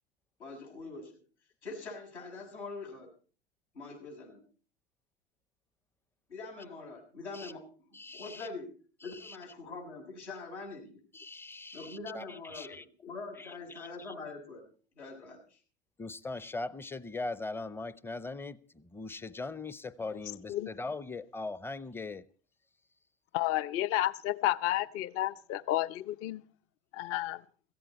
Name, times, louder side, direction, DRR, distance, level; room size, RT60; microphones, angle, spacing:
voice 1, 0.4-1.1 1.6-3.1 3.7-4.4 6.3-8.7 9.0-11.0 11.7-14.7 15.0-15.6, left 3 dB, 80° left, 7.3 m, -44 dB
voice 2, 7.9-8.5 9.0-9.4 11.1-13.1 13.4-14.1 16.0-22.3, left 3 dB, 5° left, 0.6 m, -41 dB
voice 3, 23.3-26.4 26.9-27.4, left 14 dB, 40° left, 0.7 m, -31 dB
17.0 x 14.5 x 4.2 m
hypercardioid pair, 90°, 34 cm